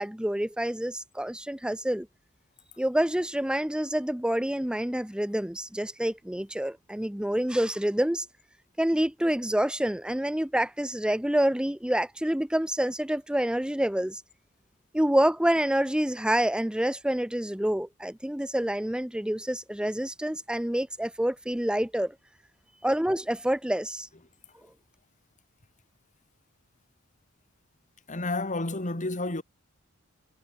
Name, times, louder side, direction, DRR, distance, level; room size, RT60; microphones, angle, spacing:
voice 1, 0.0-2.1 2.8-8.3 8.8-14.2 14.9-22.1 22.8-24.1, right 1 dB, 5° right, 0.7 m, -27 dB
voice 2, 28.1-29.4, left 2 dB, 35° left, 2.3 m, -30 dB
head